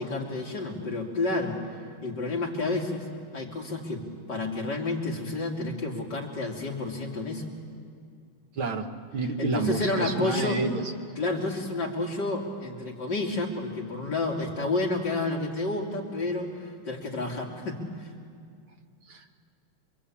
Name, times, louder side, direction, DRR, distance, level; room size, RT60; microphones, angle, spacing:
voice 1, 0.0-1.6 2.0-3.1 3.3-7.4 9.4-10.6 11.2-18.1, left 2 dB, 55° left, -1 dB, 3.7 m, -30 dB
voice 2, 8.5-10.8 19.1-19.3, right 3 dB, 80° right, 4 dB, 2.6 m, -29 dB
26.5 x 24.0 x 8.7 m, 2.3 s
omnidirectional pair, 2.2 m